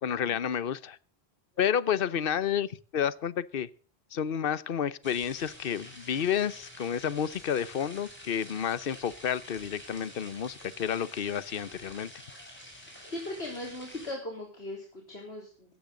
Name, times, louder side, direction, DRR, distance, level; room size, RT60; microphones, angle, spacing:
voice 1, 0.0-1.0 1.6-3.7 4.1-12.1, left 8 dB, 60° left, 18 dB, 1.0 m, -30 dB
sound 1, 5.0-14.1, equal, 10° left, 6.6 m, -48 dB
voice 2, 13.1-15.7, left 1 dB, 85° left, 0 dB, 4.1 m, -39 dB
17.0 x 14.5 x 3.9 m, 0.41 s
omnidirectional pair, 1.1 m